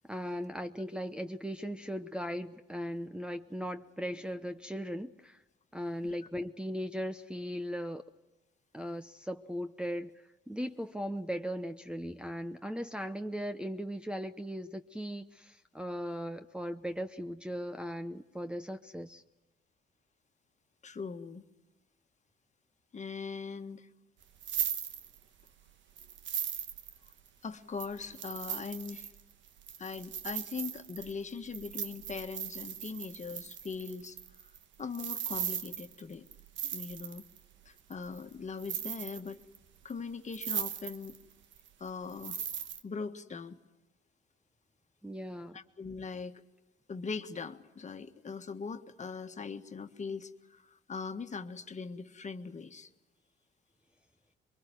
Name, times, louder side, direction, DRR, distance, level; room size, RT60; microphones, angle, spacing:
voice 1, 0.0-5.4 5.7-8.0 8.7-19.2 45.0-45.6, equal, 5° right, 5 dB, 0.9 m, -38 dB
voice 2, 20.8-21.4 22.9-23.9 27.4-29.1 29.8-34.2 34.8-36.2 36.6-37.2 37.7-39.4 39.8-41.1 41.8-42.4 42.8-43.6 45.5-46.4 46.9-52.9, left 5 dB, 35° left, 7 dB, 1.6 m, -41 dB
sound 1, 24.2-25.5 26.0-27.3 27.8-37.4 37.9-38.3 38.6-39.6 39.9-40.0 40.3-41.2 41.5-42.8, right 9 dB, 75° right, 1.3 m, -38 dB
23.0 x 23.0 x 9.3 m, 1.0 s
cardioid pair, 90°, 20 cm